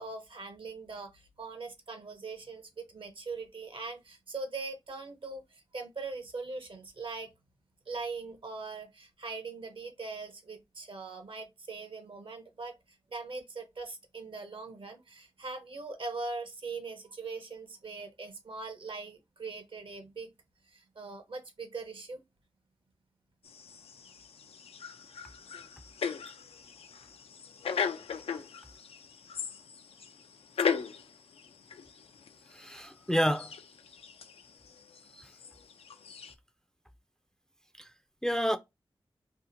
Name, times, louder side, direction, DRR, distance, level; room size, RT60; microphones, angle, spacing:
voice 1, 0.0-7.3 7.9-12.7 13.1-20.3 20.7-22.2, right 3 dB, 60° right, 0.7 m, -41 dB
sound 1, 23.4-36.3, left 6 dB, 90° left, 0.4 m, -38 dB
voice 2, 32.5-33.5 35.2-35.3 37.8-37.9 38.2-38.6, equal, 5° left, 0.3 m, -29 dB
2.7 x 2.4 x 2.5 m
wide cardioid pair, 60°, 10 cm